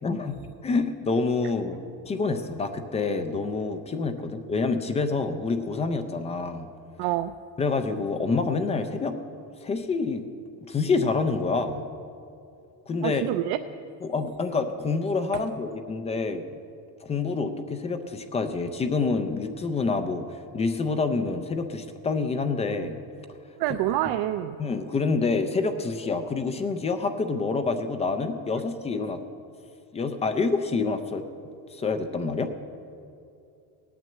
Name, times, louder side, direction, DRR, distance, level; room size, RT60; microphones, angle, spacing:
voice 1, 0.0-6.7 7.6-9.2 9.6-10.3 10.7-11.8 12.9-13.2 14.0-16.5 17.0-23.0 24.6-29.2 29.9-31.2 31.7-32.5, left 4 dB, 15° left, 8 dB, 0.4 m, -27 dB
voice 2, 7.0-7.3 13.0-13.6 23.6-24.6, right 14 dB, 60° right, 9 dB, 0.5 m, -26 dB
17.0 x 9.3 x 7.7 m, 2.6 s
cardioid pair, 165°, 45 cm